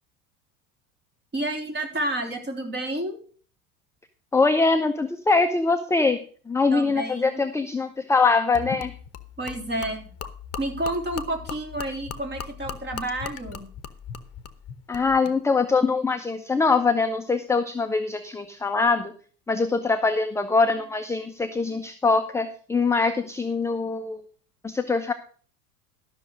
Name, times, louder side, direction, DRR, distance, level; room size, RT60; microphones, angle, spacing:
voice 1, 1.3-3.2 6.7-7.4 9.4-10.0 10.6-13.6, right 1 dB, 20° right, 4 dB, 3.4 m, -30 dB
voice 2, 4.3-6.2 6.5-8.9 14.9-19.1 19.5-24.2 24.6-25.1, left 4 dB, 5° left, 7 dB, 0.8 m, -23 dB
Gurgling / Liquid, 8.5-15.4, left 7 dB, 30° left, 1.2 m, -38 dB
13.0 x 6.4 x 6.3 m, 0.43 s
hypercardioid pair, 80°, 47 cm